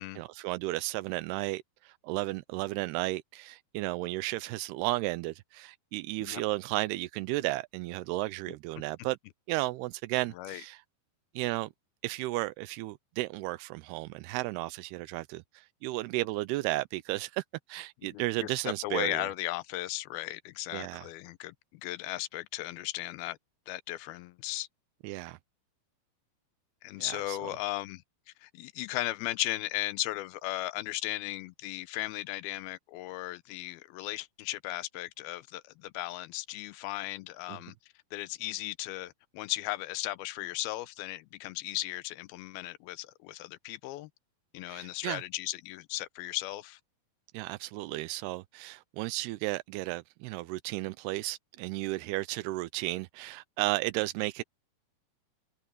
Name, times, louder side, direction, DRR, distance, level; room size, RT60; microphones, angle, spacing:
voice 1, 0.2-9.2 9.5-10.8 11.4-11.7 12.0-17.4 17.7-19.3 20.7-21.1 25.0-25.4 27.0-27.4 44.7-45.2 47.3-54.4, right 19 dB, 90° right, 2.7 m, -34 dB
voice 2, 10.3-10.6 18.1-23.4 23.7-24.7 26.8-28.0 28.4-37.7 38.1-44.1 44.5-46.8, left 17 dB, 85° left, 2.5 m, -36 dB
omnidirectional pair, 4.5 m